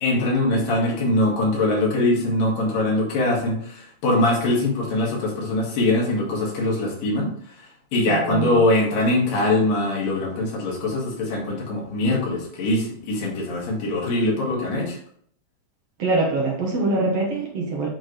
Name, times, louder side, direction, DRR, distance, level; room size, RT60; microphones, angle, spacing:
voice 1, 0.0-7.3 7.6-7.7 7.9-15.0, left 2 dB, 90° left, -3 dB, 3.7 m, -22 dB
voice 2, 8.1-8.6 16.0-17.9, right 2 dB, 60° right, -1 dB, 1.9 m, -24 dB
8.9 x 4.0 x 3.3 m, 0.63 s
omnidirectional pair, 3.8 m